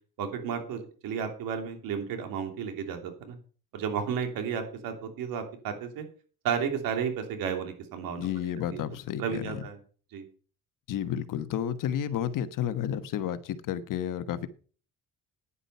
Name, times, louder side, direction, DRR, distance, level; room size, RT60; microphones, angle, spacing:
voice 1, 0.2-3.4 3.7-6.0 6.4-8.3 8.7-8.8 9.2-9.8 10.1-10.3, right 7 dB, 80° right, 3.0 m, -32 dB
voice 2, 8.2-9.6 10.9-14.5, left 10 dB, 65° left, 1.2 m, -31 dB
10.0 x 9.9 x 5.5 m
cardioid pair, 100°, 34 cm